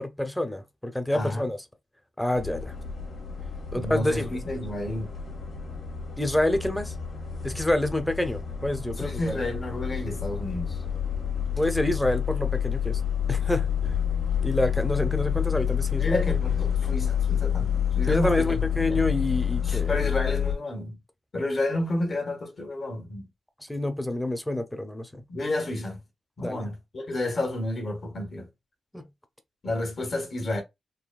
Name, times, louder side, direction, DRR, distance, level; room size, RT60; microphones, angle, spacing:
voice 1, 0.0-1.6 2.2-2.7 3.7-4.3 6.2-6.9 7.4-9.4 11.6-13.0 13.3-13.7 14.4-16.3 18.1-20.1 23.6-25.2 26.4-26.7 28.9-29.1, left 1 dB, 10° left, 0.8 m, -27 dB
voice 2, 1.1-1.5 3.7-5.1 9.0-10.8 15.9-18.6 18.9-19.0 19.6-21.0 21.3-23.3 25.3-26.0 26.4-28.5 29.6-30.6, left 1 dB, 55° left, 1.3 m, -30 dB
sound 1, 2.3-20.5, left 8 dB, 75° left, 1.0 m, -29 dB
3.9 x 2.2 x 2.4 m
cardioid pair, 50°, 0 cm